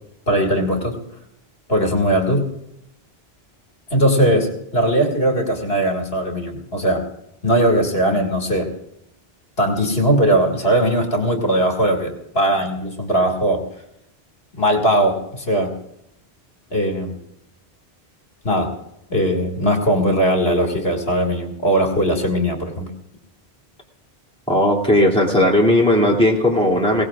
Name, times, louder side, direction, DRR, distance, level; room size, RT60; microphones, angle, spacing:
voice 1, 0.3-1.0 1.7-2.5 3.9-7.1 7.4-8.7 9.6-13.6 14.6-15.7 16.7-17.1 18.4-18.7 19.1-22.9, right 1 dB, 65° left, 1 dB, 2.3 m, -19 dB
voice 2, 24.5-27.0, left 1 dB, 5° left, -3 dB, 2.7 m, -16 dB
22.0 x 18.0 x 2.4 m, 0.78 s
omnidirectional pair, 1.1 m